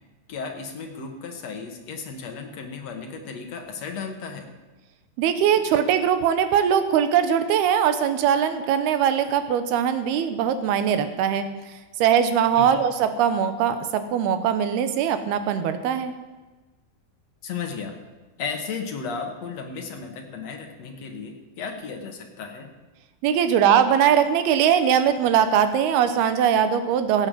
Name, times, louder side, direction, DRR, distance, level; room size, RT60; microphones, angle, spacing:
voice 1, 0.3-4.5 12.6-12.8 17.4-18.0 18.4-22.7, left 5 dB, 55° left, 4 dB, 2.1 m, -34 dB
voice 2, 5.2-11.5 12.0-16.1 23.2-27.3, right 8 dB, 80° right, 10 dB, 3.0 m, -21 dB
16.5 x 8.8 x 7.6 m, 1.2 s
omnidirectional pair, 4.5 m